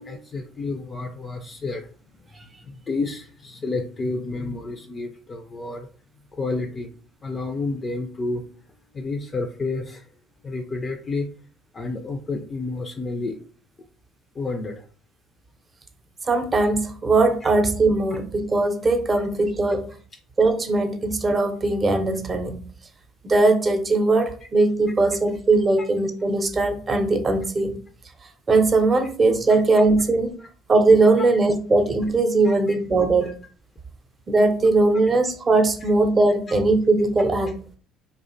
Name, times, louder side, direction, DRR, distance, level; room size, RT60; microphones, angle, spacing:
voice 1, 0.0-1.9 2.6-5.9 6.3-6.9 7.2-8.4 8.9-10.0 10.4-11.3 11.7-13.4 14.4-14.9 17.4-17.5 29.5-29.6 30.4-30.5 32.4-32.6 36.5-36.6, left 3 dB, 35° left, 5 dB, 0.3 m, -30 dB
voice 2, 16.2-19.9 20.4-22.6 23.2-27.8 28.5-30.4 30.7-33.3 34.3-37.5, right 3 dB, 35° right, 6 dB, 0.5 m, -20 dB
2.5 x 2.1 x 2.5 m, 0.42 s
hypercardioid pair, 65°, 0 cm